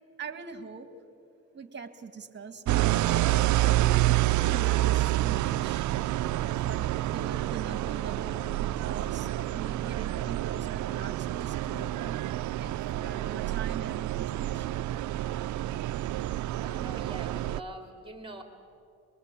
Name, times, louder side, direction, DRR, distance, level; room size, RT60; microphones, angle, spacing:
voice 1, 0.2-0.9 1.5-5.9 6.6-12.2 12.6-14.8, right 5 dB, 35° right, 10 dB, 2.2 m, -42 dB
sound 1, 2.7-17.6, right 15 dB, 70° right, 0.5 m, -28 dB
voice 2, 16.6-18.4, right 1 dB, 15° right, 5 dB, 3.5 m, -43 dB
23.0 x 22.0 x 8.5 m, 2.5 s
cardioid pair, 90°, 30 cm